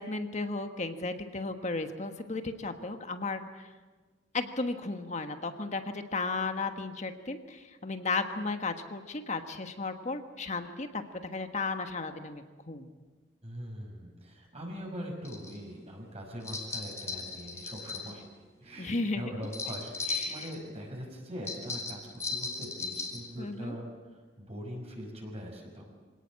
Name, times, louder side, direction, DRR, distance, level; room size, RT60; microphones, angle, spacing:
voice 1, 0.0-3.7 4.3-12.9 18.8-19.3 20.1-20.5 23.4-23.8, left 3 dB, 40° left, 7 dB, 1.4 m, -34 dB
voice 2, 13.4-18.2 18.6-22.0 22.3-23.9 24.4-25.9, equal, 35° right, 0 dB, 5.8 m, -42 dB
sound 1, 15.2-15.6 16.4-18.1 19.4-20.6 21.5-23.3, left 4 dB, 15° left, 3.2 m, -36 dB
25.5 x 18.0 x 7.6 m, 1.3 s
head